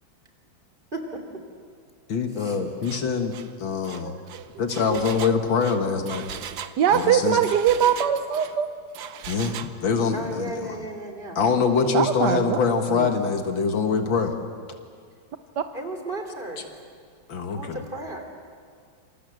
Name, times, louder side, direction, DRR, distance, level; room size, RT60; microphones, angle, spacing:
voice 1, 2.1-4.1 4.6-6.3 6.9-7.4 9.3-10.6 11.4-14.3 17.3-17.8, left 5 dB, 80° left, 6 dB, 2.3 m, -24 dB
Engine, 2.8-3.0 3.3-3.5 3.8-8.6 8.9-9.7, right 9 dB, 80° right, 1.7 m, -38 dB
voice 2, 6.8-8.7 11.9-12.6 12.9-13.1 15.6-15.7, right 8 dB, 65° right, 8 dB, 1.4 m, -22 dB
voice 3, 10.1-11.4 15.7-16.8 17.5-18.3, right 2 dB, 25° right, 4 dB, 3.4 m, -34 dB
27.5 x 27.5 x 7.9 m, 2.1 s
omnidirectional pair, 2.1 m